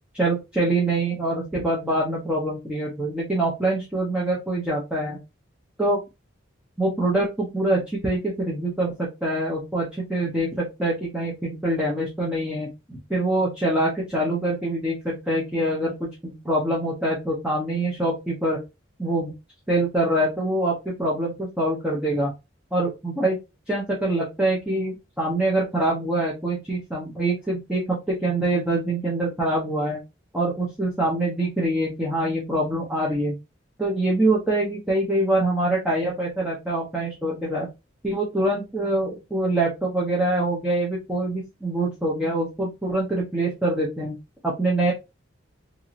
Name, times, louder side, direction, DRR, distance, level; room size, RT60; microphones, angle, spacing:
voice 1, 0.1-5.2 5.8-6.0 6.8-18.6 19.0-19.3 19.7-22.3 22.7-23.4 23.7-30.0 30.3-33.3 33.8-37.7 38.0-44.1 44.4-44.9, right 1 dB, 5° right, -5 dB, 0.6 m, -25 dB
2.9 x 2.7 x 2.4 m, 0.24 s
head